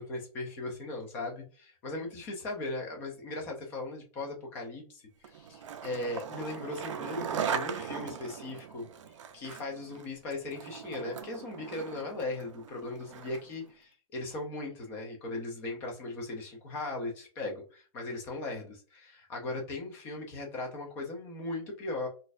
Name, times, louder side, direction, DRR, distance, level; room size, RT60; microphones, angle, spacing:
voice 1, 0.0-8.9 9.3-22.1, left 2 dB, 10° left, 1 dB, 0.4 m, -38 dB
Skateboard, 5.2-13.6, right 7 dB, 50° right, 0.5 m, -39 dB
4.1 x 2.5 x 2.4 m, 0.38 s
hypercardioid pair, 175°, 20 cm